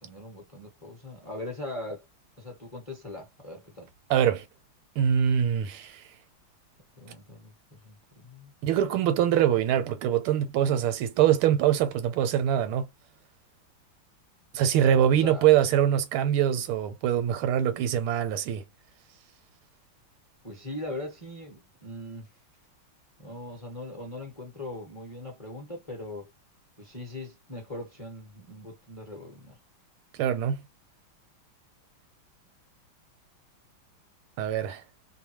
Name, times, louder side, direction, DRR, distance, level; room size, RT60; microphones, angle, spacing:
voice 1, 0.0-2.0 2.4-3.9 7.0-8.5 15.2-15.5 20.4-22.3 23.2-26.3 26.8-29.6, left 1 dB, 20° left, 0.9 m, -40 dB
voice 2, 4.1-4.4 5.0-6.0 8.6-12.9 14.5-18.6 30.2-30.6 34.4-34.8, right 10 dB, 85° right, 1.5 m, -24 dB
3.4 x 2.1 x 2.9 m
omnidirectional pair, 2.3 m